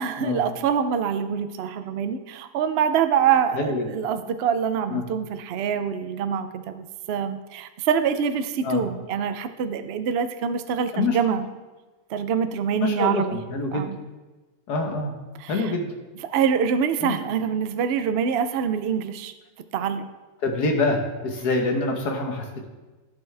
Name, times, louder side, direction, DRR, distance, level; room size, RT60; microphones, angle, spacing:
voice 1, 0.0-11.5 12.1-13.4 13.7-14.0 15.4-15.7 16.2-19.3 19.7-20.1, right 7 dB, 65° right, 9 dB, 0.6 m, -25 dB
voice 2, 3.5-3.9 4.9-5.0 8.6-8.8 10.9-11.4 12.8-13.9 14.7-15.1 15.5-15.9 17.0-17.2 20.4-22.7, left 3 dB, 75° left, 3 dB, 1.7 m, -26 dB
14.0 x 6.1 x 3.4 m, 1.2 s
omnidirectional pair, 1.7 m